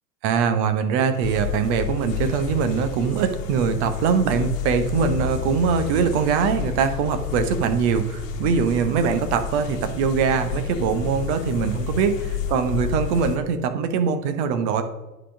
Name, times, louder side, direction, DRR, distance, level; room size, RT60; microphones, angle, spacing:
voice 1, 0.2-14.8, right 6 dB, 45° right, 9 dB, 1.1 m, -22 dB
sound 1, 1.2-13.4, left 8 dB, 55° left, 1.4 m, -30 dB
9.9 x 4.1 x 6.4 m, 1.1 s
figure-of-eight pair, 95°, 48 cm